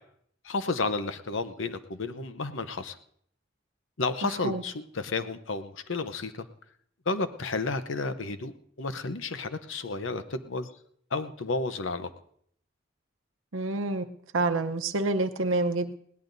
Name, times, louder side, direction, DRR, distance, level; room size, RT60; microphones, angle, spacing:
voice 1, 0.4-3.0 4.0-6.5 7.1-10.7 11.1-12.1, left 3 dB, 70° left, 10 dB, 0.8 m, -32 dB
voice 2, 13.5-15.9, right 2 dB, 85° right, 7 dB, 0.8 m, -28 dB
21.0 x 17.0 x 2.7 m, 0.65 s
head